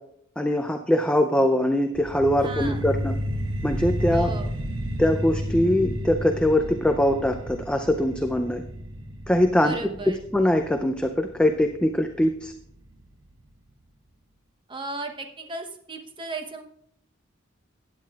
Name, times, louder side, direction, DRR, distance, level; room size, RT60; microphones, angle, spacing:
voice 1, 0.4-3.1 3.6-4.3 5.0-8.6 9.3-12.5, left 1 dB, 5° left, 5 dB, 0.4 m, -22 dB
sound 1, 1.9-13.0, equal, 75° right, 0.9 m, -32 dB
voice 2, 2.4-2.8 4.1-4.5 9.6-10.2 14.7-16.6, right 2 dB, 25° right, 4 dB, 1.0 m, -35 dB
15.5 x 9.2 x 2.4 m, 0.75 s
head